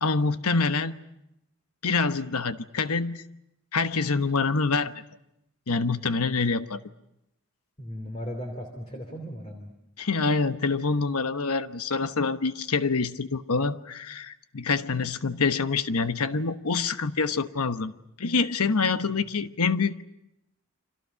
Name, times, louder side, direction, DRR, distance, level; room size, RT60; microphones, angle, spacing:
voice 1, 0.0-0.9 1.8-3.2 3.7-4.9 5.7-6.8 10.0-17.9 18.2-19.9, left 4 dB, 85° left, 10 dB, 1.1 m, -26 dB
voice 2, 7.8-9.7 18.6-19.1, equal, 30° left, 4 dB, 3.1 m, -37 dB
30.0 x 25.5 x 5.8 m, 0.84 s
head